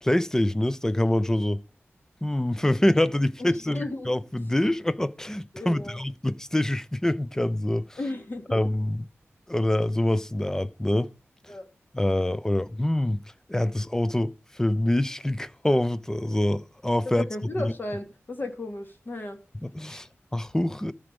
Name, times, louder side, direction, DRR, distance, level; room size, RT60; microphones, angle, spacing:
voice 1, 0.0-1.6 2.2-8.0 8.5-9.1 9.5-11.1 11.9-13.2 13.5-17.3 17.6-17.7 19.6-20.9, left 1 dB, 10° left, 0.6 m, -25 dB
voice 2, 3.4-4.1 5.5-6.0 8.0-8.5 11.5-11.7 17.2-19.4 19.9-20.1, left 2 dB, 45° left, 2.5 m, -34 dB
13.5 x 5.1 x 6.9 m
wide cardioid pair, 90°, 5 cm